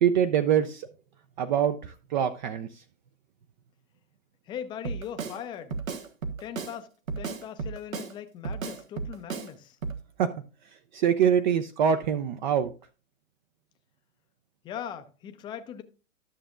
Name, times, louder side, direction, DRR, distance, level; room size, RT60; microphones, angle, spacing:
voice 1, 0.0-0.9 1.4-2.8 10.2-10.3 10.9-12.7, right 8 dB, 35° right, 0.5 m, -24 dB
voice 2, 4.5-5.8 6.4-6.9 7.2-9.8 14.6-15.8, left 9 dB, 10° left, 0.5 m, -39 dB
Drum kit, 4.8-5.4 5.7-6.8 7.1-8.1 8.4-9.5 9.8-10.0, right 5 dB, 85° right, 1.4 m, -34 dB
12.5 x 6.7 x 2.4 m
hypercardioid pair, 125°, 40 cm